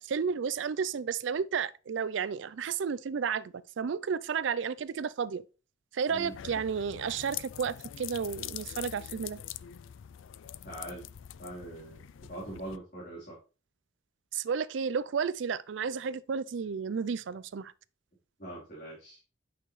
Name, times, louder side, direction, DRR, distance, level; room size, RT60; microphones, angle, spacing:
voice 1, 0.0-5.4 5.9-9.4 14.3-17.7, right 6 dB, 75° right, 0.4 m, -32 dB
sound 1, 6.1-12.8, left 11 dB, 85° left, 0.4 m, -44 dB
voice 2, 10.6-11.0 11.4-13.4 18.4-19.2, right 1 dB, 45° left, 3.6 m, -42 dB
9.2 x 5.8 x 3.2 m
head